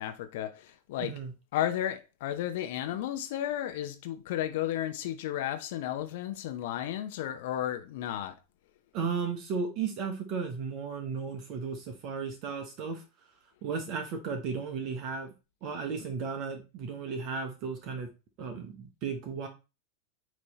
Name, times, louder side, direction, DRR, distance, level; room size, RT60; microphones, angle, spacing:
voice 1, 0.0-1.1 1.5-8.3, left 12 dB, 60° left, 0.8 m, -33 dB
voice 2, 1.0-1.3 8.9-13.0 13.6-15.3 15.6-18.1 18.4-19.5, right 5 dB, 45° right, 1.2 m, -35 dB
9.1 x 3.2 x 4.2 m
figure-of-eight pair, 90°, 0 cm